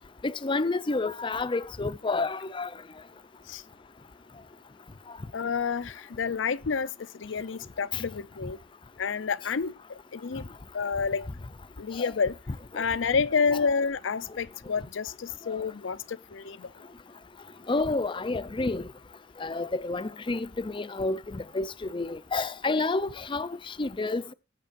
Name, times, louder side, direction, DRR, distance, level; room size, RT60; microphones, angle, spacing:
voice 1, 0.2-2.7 13.5-13.6 17.7-18.8 19.4-21.7 21.9-23.5 23.8-24.3, left 3 dB, 25° left, 0.5 m, -29 dB
voice 2, 5.3-8.6 9.0-10.5 10.7-11.3 11.8-12.4 12.7-16.7, left 5 dB, 75° left, 0.6 m, -29 dB
20.0 x 8.3 x 2.6 m
head